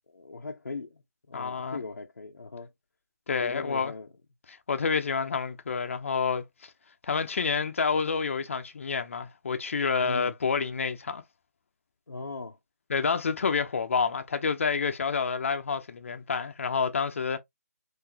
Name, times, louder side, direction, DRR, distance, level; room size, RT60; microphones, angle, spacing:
voice 1, 0.1-1.0 1.3-2.7 3.4-4.1 10.0-10.3 12.1-12.6, left 3 dB, 90° left, 0.7 m, -39 dB
voice 2, 1.3-1.8 3.3-3.9 4.5-6.7 7.0-11.2 12.9-17.4, left 5 dB, 50° left, 0.6 m, -28 dB
4.0 x 2.7 x 2.7 m
figure-of-eight pair, 160°, 9 cm